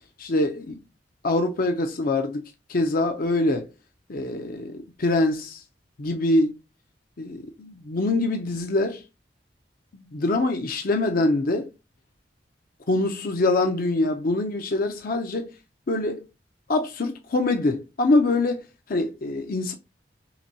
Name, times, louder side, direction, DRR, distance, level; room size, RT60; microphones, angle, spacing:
voice 1, 0.2-0.8 1.2-2.4 2.7-3.7 4.1-5.6 6.0-6.5 7.2-9.0 10.1-11.7 12.9-15.5 15.9-16.3 16.7-18.6 18.9-19.7, left 2 dB, 55° left, 0.6 m, -24 dB
5.7 x 2.2 x 2.8 m
head